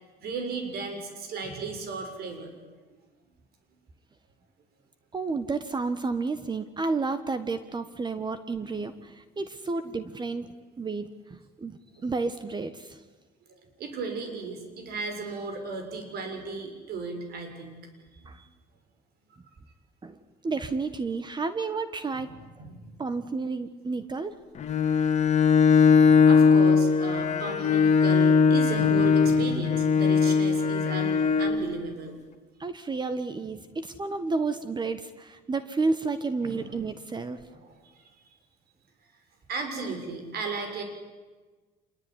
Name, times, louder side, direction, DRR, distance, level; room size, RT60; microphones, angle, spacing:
voice 1, 0.2-2.5 8.1-8.2 8.6-8.8 13.5-17.9 18.1-18.5 22.1-22.9 24.8-25.1 26.2-32.2 36.4-36.7 37.5-37.8 39.5-40.8, right 3 dB, 70° right, 6 dB, 6.9 m, -35 dB
voice 2, 5.1-10.5 10.8-13.0 18.2-18.4 20.0-20.2 20.4-22.3 23.0-24.3 32.6-37.4, right 3 dB, 25° right, 11 dB, 1.5 m, -31 dB
Bowed string instrument, 24.6-31.6, left 6 dB, 45° left, 2.1 m, -20 dB
27.0 x 22.0 x 9.8 m, 1.3 s
cardioid pair, 110°, 17 cm